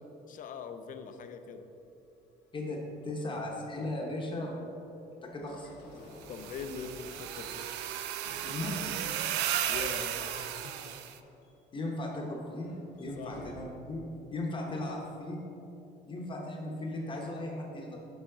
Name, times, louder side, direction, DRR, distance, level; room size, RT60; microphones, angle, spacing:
voice 1, 0.3-1.7 6.3-7.7 9.7-11.0 11.8-12.0 13.2-13.4, left 5 dB, 50° left, 8 dB, 0.5 m, -42 dB
sound 1, 1.1-13.7, left 2 dB, 90° left, 1.0 m, -54 dB
voice 2, 2.5-4.8 5.2-5.7 8.4-9.0 11.7-12.7 13.0-15.4 16.1-18.0, left 1 dB, 30° left, -1 dB, 0.9 m, -37 dB
sound 2, 6.2-11.1, right 11 dB, 90° right, 0.4 m, -35 dB
7.0 x 5.7 x 3.8 m, 2.9 s
cardioid pair, 110°, 17 cm